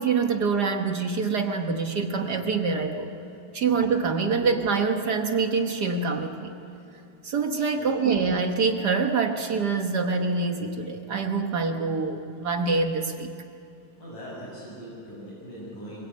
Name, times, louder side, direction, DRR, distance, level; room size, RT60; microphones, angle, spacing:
voice 1, 0.0-3.1 3.5-6.5 7.2-13.3, right 4 dB, 60° right, 4 dB, 1.0 m, -25 dB
voice 2, 14.0-16.1, equal, 80° left, -6 dB, 7.9 m, -41 dB
26.5 x 23.5 x 8.7 m, 2.6 s
omnidirectional pair, 3.7 m